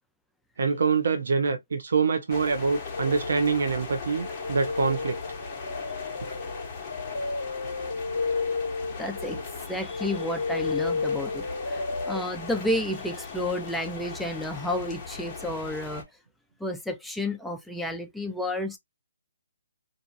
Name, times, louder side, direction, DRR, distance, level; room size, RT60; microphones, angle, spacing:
voice 1, 0.6-5.2, right 5 dB, 70° right, 0.4 m, -25 dB
sound 1, 2.3-16.0, left 4 dB, 25° left, 0.8 m, -39 dB
sound 2, 2.9-3.7 4.2-12.2, left 4 dB, 90° left, 0.5 m, -32 dB
voice 2, 9.0-9.4 9.7-16.0 16.6-18.8, left 1 dB, ahead, 0.3 m, -31 dB
2.6 x 2.4 x 2.5 m
hypercardioid pair, 155°, 0 cm